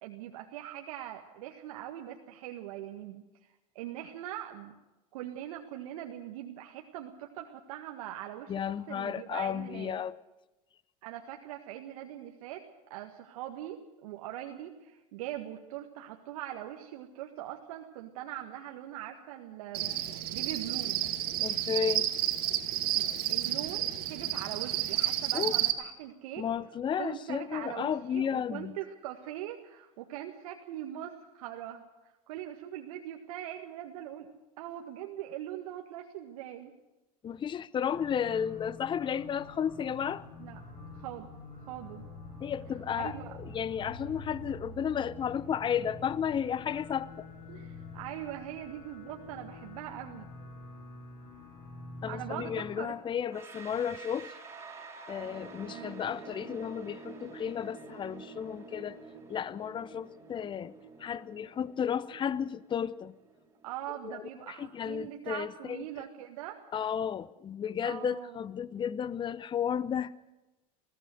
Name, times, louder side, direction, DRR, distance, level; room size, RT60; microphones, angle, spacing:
voice 1, 0.0-3.2 3.7-4.7 5.1-10.0 11.0-21.0 22.9-26.4 27.0-34.3 34.6-36.7 40.4-40.6 40.9-41.3 41.6-42.1 43.0-43.4 47.5-50.3 52.1-52.9 55.7-55.9 63.6-66.6 67.8-68.3, right 12 dB, 65° right, 1.7 m, -42 dB
voice 2, 8.5-10.2 21.4-22.1 25.3-25.6 26.4-28.7 37.2-40.3 42.4-47.3 52.0-54.3 55.1-59.0 59.3-63.1 64.0-65.8 66.7-70.1, left 8 dB, 25° left, 0.7 m, -33 dB
Cricket, 19.7-25.7, right 13 dB, 50° right, 2.0 m, -31 dB
sound 1, 37.9-52.7, left 2 dB, 65° left, 7.6 m, -46 dB
sound 2, 53.3-64.2, right 4 dB, 15° right, 4.0 m, -49 dB
21.0 x 15.5 x 7.9 m
hypercardioid pair, 85°, 19 cm